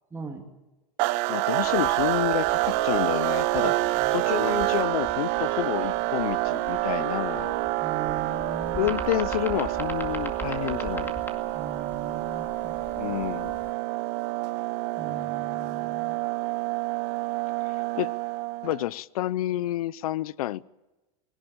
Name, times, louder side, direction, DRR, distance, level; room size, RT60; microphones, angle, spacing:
voice 1, 0.1-0.4 3.6-4.3 7.8-8.9 11.5-12.8 15.0-16.2, right 5 dB, 10° right, 3 dB, 2.7 m, -40 dB
sound 1, 1.0-18.8, right 19 dB, 55° right, 1.0 m, -28 dB
voice 2, 1.1-3.8 4.1-7.5 8.7-11.1 13.0-13.5 17.6-18.1 18.6-20.7, left 15 dB, 75° left, 22 dB, 0.7 m, -29 dB
sound 2, 1.6-13.7, left 2 dB, 10° left, 2.2 m, -42 dB
21.0 x 17.5 x 8.8 m, 1.1 s
supercardioid pair, 125°, 19 cm